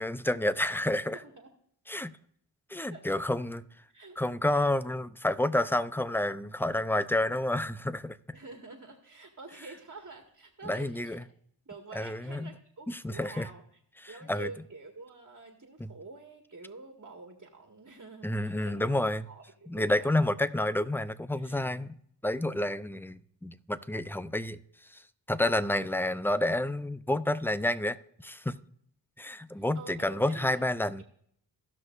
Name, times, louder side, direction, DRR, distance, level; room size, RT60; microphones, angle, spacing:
voice 1, 0.0-1.2 1.9-2.1 2.7-3.6 4.2-8.2 10.6-11.2 11.9-12.5 12.9-13.5 14.0-14.5 15.8-15.9 18.2-19.2 19.7-22.0 22.2-24.6 24.9-25.0 25.3-28.6 29.2-31.0, left 1 dB, 5° left, 0.6 m, -29 dB
voice 2, 1.1-1.5 2.9-3.2 3.9-4.2 8.3-11.2 11.7-13.8 14.1-20.1 21.3-21.7 29.6-30.6, right 3 dB, 35° right, 1.9 m, -48 dB
16.5 x 6.1 x 2.6 m
cardioid pair, 50°, 46 cm